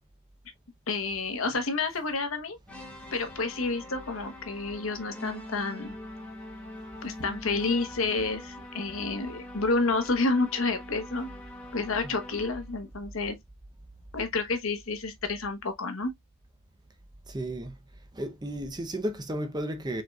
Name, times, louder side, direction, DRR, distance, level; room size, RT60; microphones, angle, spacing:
voice 1, 0.9-2.6 3.1-6.0 7.0-11.3 11.7-13.4 14.1-16.1, left 3 dB, 65° left, 1.1 m, -29 dB
sound 1, 2.7-12.8, left 1 dB, 5° left, 1.1 m, -44 dB
voice 2, 17.3-17.8 18.1-20.0, right 1 dB, 20° right, 0.6 m, -33 dB
5.0 x 3.9 x 2.3 m
head